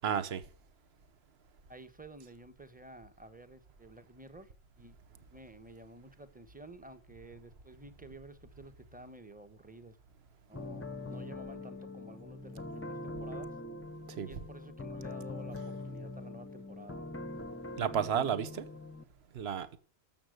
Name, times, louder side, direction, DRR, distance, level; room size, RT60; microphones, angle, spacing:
voice 1, 0.0-0.4 14.2-14.3 17.8-18.6 19.3-19.8, right 8 dB, 65° right, 1.2 m, -32 dB
voice 2, 1.7-5.0 5.3-10.0 10.5-13.6 14.3-17.0, right 1 dB, 10° right, 1.0 m, -52 dB
sound 1, 10.5-19.0, left 2 dB, 15° left, 0.6 m, -43 dB
13.0 x 7.2 x 6.4 m
omnidirectional pair, 1.1 m